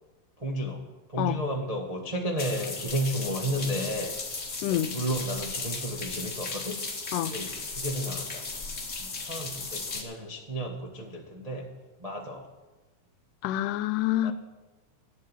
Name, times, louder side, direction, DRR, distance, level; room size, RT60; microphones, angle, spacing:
voice 1, 0.4-0.8 1.1-4.1 4.7-6.8 7.2-8.5 9.0-11.7 12.0-12.5 14.2-14.3, right 1 dB, 50° right, 0 dB, 0.4 m, -32 dB
sound 1, 2.4-10.0, left 3 dB, 30° left, 1.5 m, -36 dB
voice 2, 4.6-4.9 7.1-7.3 13.4-14.3, left 13 dB, 90° left, 14 dB, 2.2 m, -27 dB
13.5 x 7.5 x 9.9 m, 1.2 s
omnidirectional pair, 3.6 m